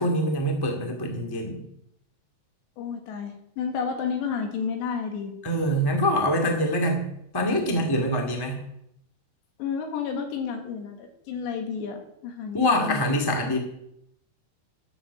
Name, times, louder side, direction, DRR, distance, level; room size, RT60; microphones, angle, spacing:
voice 1, 0.0-1.6 5.4-7.0 7.3-8.6 12.5-13.6, equal, 15° left, 3 dB, 0.7 m, -24 dB
voice 2, 2.8-5.3 9.6-13.0, left 6 dB, 85° left, 5 dB, 4.0 m, -31 dB
12.5 x 7.7 x 7.0 m, 0.77 s
omnidirectional pair, 4.9 m